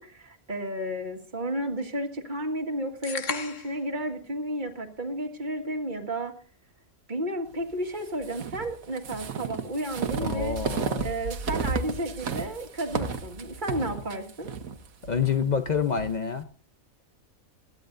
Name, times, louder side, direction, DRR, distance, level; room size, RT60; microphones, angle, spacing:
voice 1, 0.0-6.3 7.1-10.6 11.0-14.5, right 1 dB, 35° right, 1.9 m, -32 dB
sound 1, 3.0-3.9, left 6 dB, 65° left, 1.6 m, -34 dB
sound 2, 8.2-16.1, right 5 dB, 85° right, 1.6 m, -33 dB
voice 2, 10.2-11.1 15.1-16.5, left 6 dB, 40° left, 0.7 m, -27 dB
21.0 x 14.5 x 2.6 m
omnidirectional pair, 1.4 m